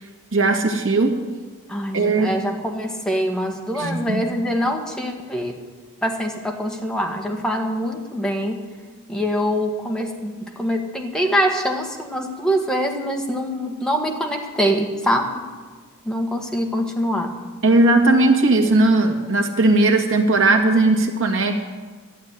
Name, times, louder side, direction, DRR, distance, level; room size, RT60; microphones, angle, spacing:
voice 1, 0.3-1.1 1.9-2.3 3.8-4.2 17.6-21.5, right 2 dB, 65° right, 3 dB, 1.9 m, -17 dB
voice 2, 1.7-5.6 6.0-8.6 9.1-15.4 16.0-17.4, equal, 5° left, 1 dB, 1.5 m, -24 dB
13.0 x 8.3 x 9.2 m, 1.4 s
head